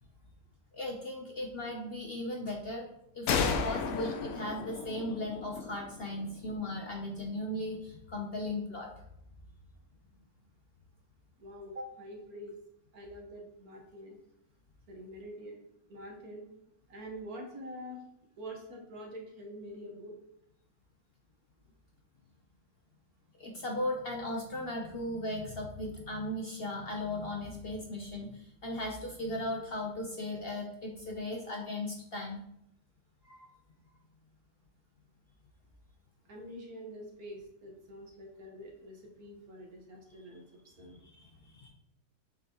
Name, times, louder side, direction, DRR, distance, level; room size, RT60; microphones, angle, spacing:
voice 1, 0.7-2.9 3.1-8.9 23.4-32.4 33.2-33.5 40.8-41.7, left 1 dB, 45° left, 1 dB, 0.8 m, -37 dB
sound 1, 3.3-6.8, left 5 dB, 70° left, 1.1 m, -34 dB
voice 2, 11.4-12.5 12.9-14.2 14.9-15.6 15.9-16.5 16.9-18.0 18.4-20.2 36.3-41.0, equal, 65° right, 0 dB, 1.9 m, -46 dB
7.6 x 5.8 x 3.0 m, 0.78 s
omnidirectional pair, 1.7 m